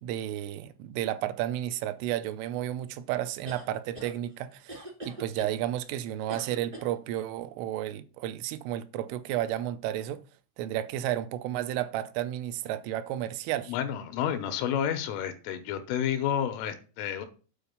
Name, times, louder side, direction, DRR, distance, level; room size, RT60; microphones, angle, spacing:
voice 1, 0.0-10.2 10.6-13.7, right 12 dB, 90° right, 3.2 m, -32 dB
sound 1, 3.4-4.1 4.7-5.5 6.3-6.9, right 1 dB, 35° right, 0.6 m, -42 dB
voice 2, 13.7-17.3, left 9 dB, 90° left, 3.6 m, -30 dB
8.8 x 4.4 x 7.0 m
omnidirectional pair, 5.6 m